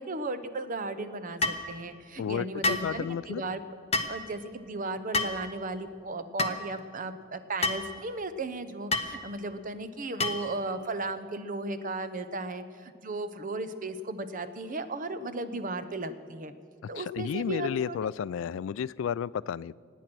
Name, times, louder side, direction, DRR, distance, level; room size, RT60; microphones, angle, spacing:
voice 1, 0.0-3.6 4.1-16.5 16.9-18.0, right 2 dB, 45° right, 11 dB, 0.8 m, -35 dB
sound 1, 1.4-1.6 2.6-2.9 3.9-4.2 5.1-5.4 6.4-6.6 7.6-7.9 8.9-9.1 10.2-10.5, left 2 dB, 30° left, 0.8 m, -28 dB
voice 2, 2.2-3.4 16.9-19.7, left 7 dB, 70° left, 20 dB, 0.3 m, -32 dB
25.0 x 9.3 x 6.1 m, 2.1 s
head